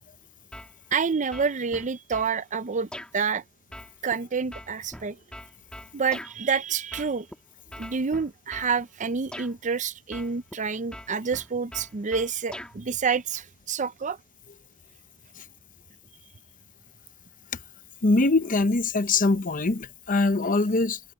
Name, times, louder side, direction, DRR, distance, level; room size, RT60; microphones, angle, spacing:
sound 1, 0.5-1.0 1.3-2.3 2.9-3.1 3.7-6.3 6.9-7.4 7.7-8.7 9.3-9.5 10.1-10.6 10.9-12.7, left 1 dB, 5° left, 2.5 m, -41 dB
voice 1, 0.9-3.4 4.0-5.2 5.9-7.3 7.8-14.2, right 5 dB, 35° right, 0.5 m, -28 dB
voice 2, 18.0-21.0, left 3 dB, 40° left, 0.8 m, -23 dB
head